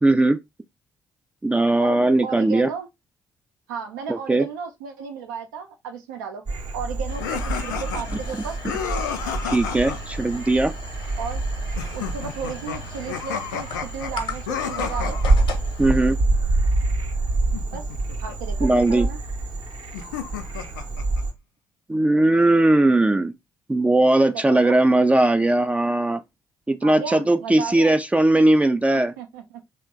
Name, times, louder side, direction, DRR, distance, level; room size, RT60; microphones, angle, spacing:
voice 1, 0.0-0.4 1.4-2.7 4.1-4.5 9.5-10.7 15.8-16.2 18.6-19.1 21.9-23.3 23.7-26.2 26.7-29.1, right 2 dB, 15° right, 0.3 m, -19 dB
voice 2, 1.8-2.9 3.7-6.4 6.7-8.6 11.2-11.4 11.9-15.2 17.7-17.8 18.2-19.2 24.3-24.8 26.8-27.9 29.2-29.6, right 6 dB, 80° right, 0.6 m, -34 dB
Frog, 6.5-21.3, right 2 dB, 50° right, 0.8 m, -27 dB
sound 1, 7.1-17.4, left 5 dB, 60° left, 0.8 m, -41 dB
sound 2, 7.2-10.0 11.8-15.6 17.5-18.4 19.9-21.2, left 8 dB, 80° left, 0.4 m, -32 dB
3.0 x 2.1 x 3.5 m
figure-of-eight pair, 40°, 10 cm